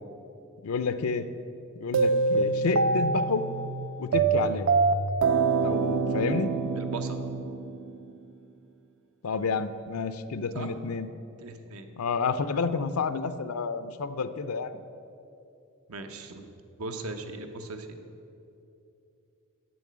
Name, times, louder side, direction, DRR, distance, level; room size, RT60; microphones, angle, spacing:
voice 1, 0.6-1.3 1.8-3.5 4.0-4.7 5.6-6.5 9.2-11.1 12.0-14.8, left 4 dB, 90° left, 12 dB, 0.5 m, -30 dB
sound 1, 1.9-8.1, right 4 dB, 60° right, 0.4 m, -25 dB
voice 2, 6.7-7.2 10.5-10.7 11.4-11.9 15.9-16.5 16.8-17.9, right 3 dB, 80° right, 6 dB, 0.9 m, -38 dB
8.4 x 7.1 x 7.4 m, 2.7 s
head